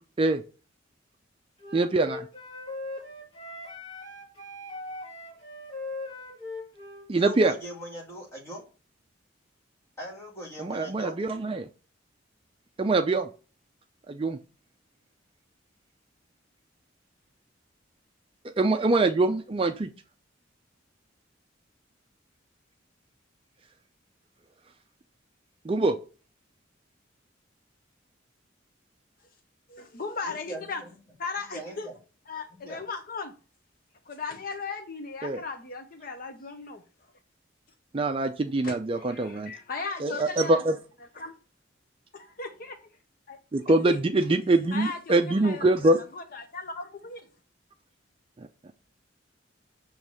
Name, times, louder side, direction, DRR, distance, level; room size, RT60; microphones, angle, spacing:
Wind instrument woodwind instrument, 1.6-7.1, left 2 dB, 30° left, 2.0 m, -39 dB
voice 1, 1.7-2.3 7.1-7.5 10.6-11.7 12.8-13.3 14.1-14.4 18.4-19.9 25.7-26.0 35.2-35.4 37.9-39.5 40.0-40.8 43.5-46.0, right 2 dB, 30° right, 0.4 m, -24 dB
voice 2, 7.2-8.7 10.0-11.2 30.2-30.9 31.5-31.9 32.5-32.8, right 1 dB, 15° left, 2.1 m, -41 dB
voice 3, 29.7-30.8 31.2-31.9 32.3-33.3 34.1-37.1 38.6-40.8 41.1-41.3 42.1-42.8 43.3-43.4 43.9-44.0 44.3-44.4 44.7-47.2, left 4 dB, 50° left, 0.7 m, -37 dB
7.0 x 3.2 x 6.1 m
head